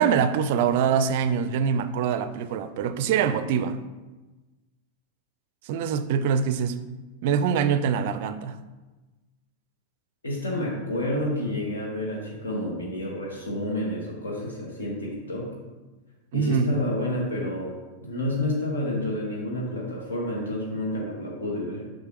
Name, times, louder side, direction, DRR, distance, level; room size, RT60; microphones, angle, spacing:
voice 1, 0.0-3.8 5.7-6.8 7.2-8.6 16.3-16.8, right 7 dB, 50° right, 13 dB, 0.4 m, -24 dB
voice 2, 10.2-15.5 16.3-17.7 18.0-21.9, left 1 dB, 70° left, -1 dB, 1.4 m, -29 dB
6.6 x 5.2 x 3.0 m, 1.2 s
figure-of-eight pair, 90°, 0 cm